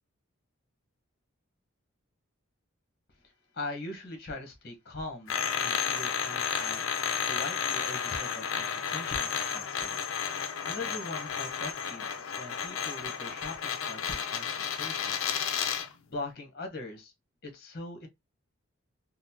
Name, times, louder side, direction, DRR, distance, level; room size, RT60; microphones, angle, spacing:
voice 1, 3.5-10.0 10.4-15.3 15.7-17.1 17.4-18.1, left 2 dB, 45° left, 1.0 m, -41 dB
sound 1, 5.3-15.9, left 7 dB, 70° left, 0.5 m, -32 dB
3.9 x 2.0 x 2.7 m
head